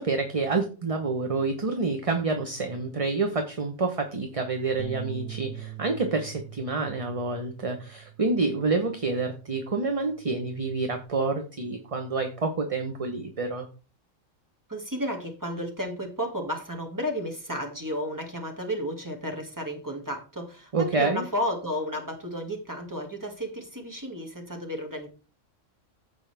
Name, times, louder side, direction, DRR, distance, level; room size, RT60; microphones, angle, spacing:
voice 1, 0.0-13.7 20.7-21.2, right 3 dB, 30° right, 5 dB, 0.9 m, -28 dB
sound 1, 4.8-11.0, right 13 dB, 70° right, 1.1 m, -43 dB
voice 2, 14.7-25.1, equal, 15° right, 1 dB, 2.0 m, -33 dB
15.0 x 5.4 x 3.4 m, 0.36 s
omnidirectional pair, 1.3 m